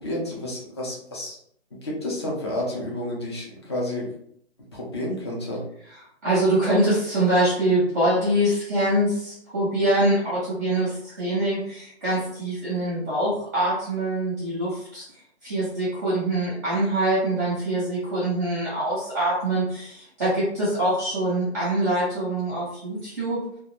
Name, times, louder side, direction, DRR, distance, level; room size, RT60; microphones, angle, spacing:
voice 1, 0.0-1.4 1.8-4.1 4.7-5.6, left 1 dB, 25° left, -3 dB, 0.5 m, -30 dB
voice 2, 5.9-15.0 15.4-23.4, right 1 dB, 15° right, -8 dB, 0.6 m, -24 dB
2.3 x 2.0 x 2.8 m, 0.67 s
hypercardioid pair, 160°, 34 cm